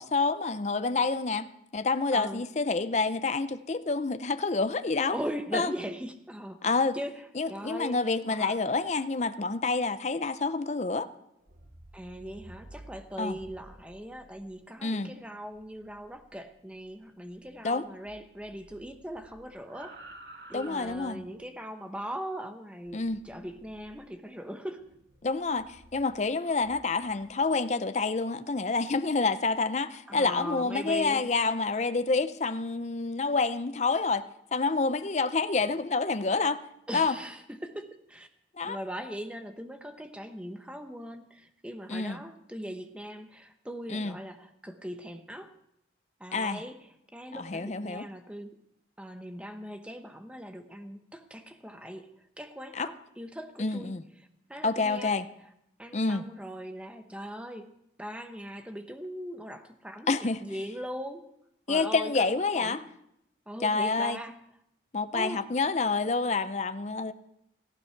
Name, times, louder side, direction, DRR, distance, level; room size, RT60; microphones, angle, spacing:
voice 1, 0.0-1.5 1.7-5.2 5.5-5.7 6.6-7.0 7.3-11.1 13.2-13.4 14.8-15.1 17.6-17.9 20.5-21.2 22.9-23.2 25.2-34.2 34.5-36.6 36.9-37.2 38.6-38.8 41.9-42.2 43.9-44.2 46.3-46.6 47.3-48.1 52.7-52.9 53.6-54.0 54.6-55.3 55.9-56.2 60.1-60.4 61.7-62.8 63.6-64.2 64.9-67.1, left 3 dB, 40° left, 0.5 m, -28 dB
voice 2, 2.1-2.4 5.1-6.6 6.9-7.1 7.5-8.0 8.3-8.6 11.9-20.0 20.5-24.8 30.1-31.3 36.9-38.3 38.6-45.5 46.2-48.5 49.0-52.1 52.4-55.2 55.8-57.7 58.0-61.2 61.7-62.9 63.5-64.4 65.1-65.4, equal, 5° right, 0.9 m, -40 dB
sound 1, 11.3-17.8 18.0-21.5 22.9-24.1 24.8-27.4, right 1 dB, 55° right, 2.1 m, -53 dB
17.5 x 15.0 x 4.6 m
head